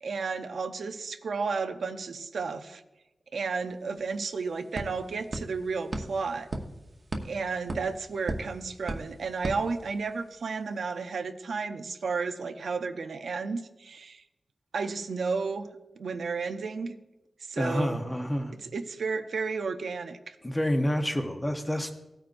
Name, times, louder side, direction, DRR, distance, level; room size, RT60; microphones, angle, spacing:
voice 1, 0.0-2.8 3.3-6.5 7.2-14.2 14.7-15.7 16.0-16.9 17.5-18.0 18.6-20.4, right 4 dB, 80° right, 8 dB, 0.6 m, -32 dB
sound 1, 3.6-3.7 4.0-10.4, right 2 dB, 35° right, 1.0 m, -39 dB
voice 2, 17.6-18.5 20.4-21.9, equal, 15° left, 5 dB, 0.9 m, -28 dB
17.0 x 9.0 x 2.6 m, 0.99 s
wide cardioid pair, 135°, 0 cm